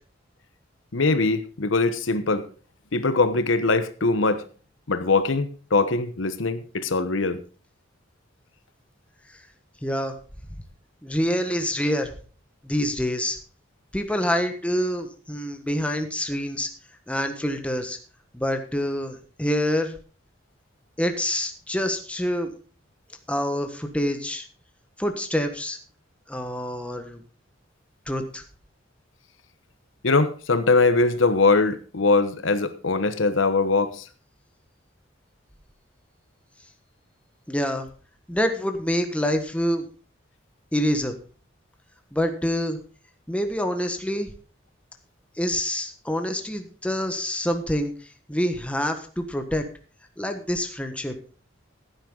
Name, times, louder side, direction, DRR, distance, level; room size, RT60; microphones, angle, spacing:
voice 1, 0.9-2.4 2.9-4.4 4.9-7.4 30.0-34.1, left 3 dB, 75° left, 11 dB, 1.0 m, -22 dB
voice 2, 9.8-10.2 11.0-12.1 12.6-13.4 13.9-16.7 17.1-18.0 18.3-19.9 21.0-22.5 23.3-24.4 25.0-25.8 26.3-27.2 28.1-28.4 37.5-37.9 38.3-39.9 40.7-41.2 42.1-42.8 43.3-44.3 45.4-47.9 48.3-49.6 50.2-51.1, equal, 5° left, 6 dB, 1.4 m, -26 dB
15.5 x 9.1 x 3.9 m, 0.37 s
head